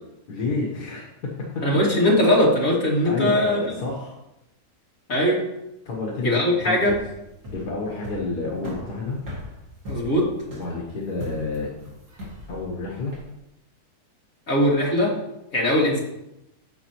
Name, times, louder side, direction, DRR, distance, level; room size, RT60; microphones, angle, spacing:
voice 1, 0.3-1.3 3.0-4.1 5.9-7.0 7.5-9.2 10.5-11.7 12.5-13.1, left 3 dB, 80° left, -3 dB, 1.8 m, -29 dB
voice 2, 1.6-3.8 5.1-5.4 6.2-6.9 9.9-10.2 14.5-15.1 15.5-16.0, left 1 dB, 55° left, -5 dB, 2.7 m, -20 dB
sound 1, 6.8-13.3, left 1 dB, 90° right, 2.7 m, -39 dB
13.5 x 5.3 x 3.0 m, 0.89 s
omnidirectional pair, 1.6 m